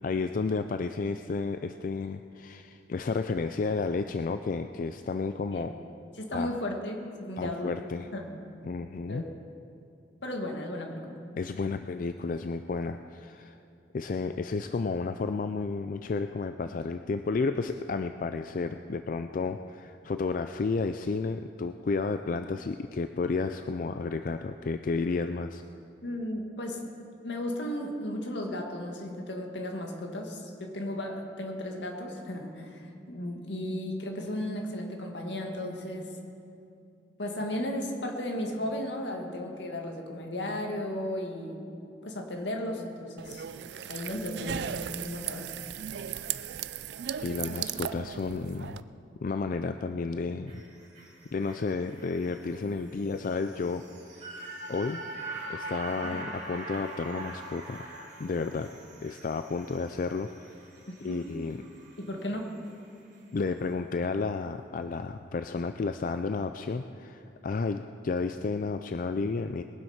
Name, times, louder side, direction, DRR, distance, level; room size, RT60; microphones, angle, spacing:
voice 1, 0.0-5.7 6.3-6.6 7.4-8.1 8.6-9.2 11.4-13.6 13.9-25.6 47.2-48.8 49.2-50.5 51.3-54.3 54.7-55.0 55.5-57.8 58.2-58.7 59.0-60.5 61.0-61.6 63.3-69.6, left 4 dB, 50° left, 9 dB, 0.4 m, -32 dB
voice 2, 6.2-7.7 8.1-8.3 9.1-9.3 10.2-11.1 26.0-26.8 27.2-36.1 37.2-41.6 42.0-43.4 43.9-45.4 60.9-61.2 62.0-62.5, left 1 dB, 80° left, 2 dB, 1.9 m, -35 dB
sound 1, 43.2-48.8, right 9 dB, 70° right, 0.4 m, -36 dB
sound 2, 50.5-62.8 63.2-63.3, right 2 dB, 40° right, 2.6 m, -43 dB
21.0 x 7.8 x 5.7 m, 2.5 s
head